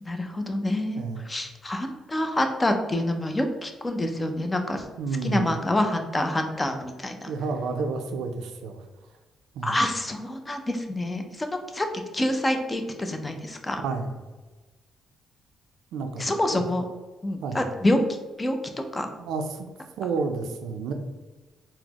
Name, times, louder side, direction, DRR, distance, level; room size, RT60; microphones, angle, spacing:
voice 1, 0.0-4.9 5.2-7.3 9.6-11.9 12.1-13.8 16.2-16.8 17.2-18.0 18.4-18.6 18.9-19.1, left 1 dB, 20° left, 5 dB, 0.5 m, -27 dB
voice 2, 1.0-1.3 5.0-5.5 7.3-8.8 9.6-9.8 13.8-14.2 15.9-16.2 16.5-16.6 17.4-17.6 19.2-19.7 20.0-20.9, right 4 dB, 85° right, 6 dB, 0.4 m, -30 dB
4.0 x 2.0 x 2.9 m, 1.2 s
cardioid pair, 90°, 0 cm